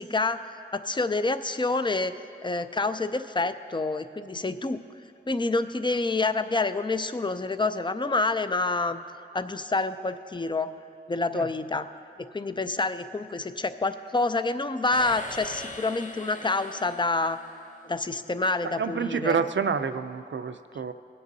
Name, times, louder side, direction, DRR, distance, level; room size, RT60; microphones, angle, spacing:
voice 1, 0.0-2.1 2.4-4.8 5.3-9.0 9.3-10.7 11.1-11.9 12.3-17.4 17.8-19.4, left 3 dB, 25° left, 11 dB, 0.4 m, -27 dB
sound 1, 14.9-18.1, left 1 dB, 40° left, 0.8 m, -42 dB
voice 2, 18.6-20.9, right 6 dB, 65° right, 10 dB, 0.5 m, -28 dB
20.5 x 7.7 x 2.7 m, 2.4 s
wide cardioid pair, 65°, 21 cm